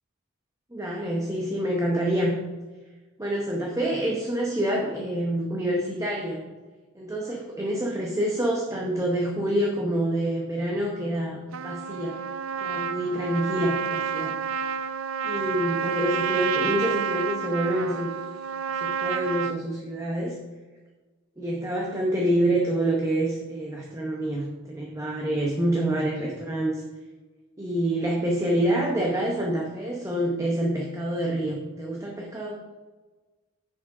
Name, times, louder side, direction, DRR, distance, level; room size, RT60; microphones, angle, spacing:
voice 1, 0.7-2.4 3.2-6.4 6.9-12.2 12.6-14.3 15.2-18.1 18.7-20.4 21.4-26.8 27.6-32.6, right 1 dB, 15° right, -1 dB, 0.8 m, -27 dB
Trumpet, 11.5-19.6, right 6 dB, 70° right, 0.4 m, -29 dB
7.1 x 6.1 x 4.9 m, 1.3 s
head